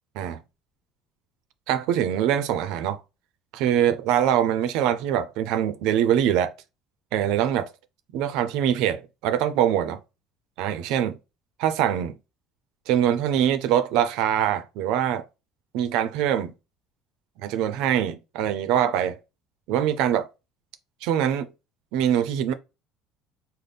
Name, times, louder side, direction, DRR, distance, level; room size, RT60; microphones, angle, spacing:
voice 1, 1.7-3.0 3.5-6.5 7.1-7.7 8.1-10.0 10.6-11.2 11.6-12.2 12.9-15.2 15.7-16.5 17.4-19.2 19.7-20.3 21.0-21.5 21.9-22.5, right 10 dB, 75° right, 0.5 m, -23 dB
4.0 x 2.1 x 3.3 m
cardioid pair, 115°, 0 cm